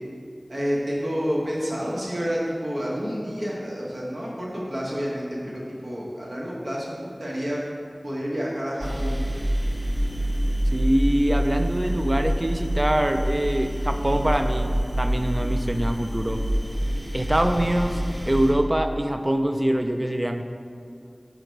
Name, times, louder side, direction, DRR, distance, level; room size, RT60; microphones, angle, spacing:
voice 1, 0.5-7.6 8.0-9.6, equal, 70° right, -6 dB, 1.4 m, -29 dB
sound 1, 8.8-18.5, equal, 55° right, 1.0 m, -26 dB
voice 2, 10.7-16.4 17.1-20.4, right 1 dB, 30° right, 7 dB, 0.4 m, -24 dB
6.5 x 3.9 x 4.6 m, 2.3 s
wide cardioid pair, 50°, 0 cm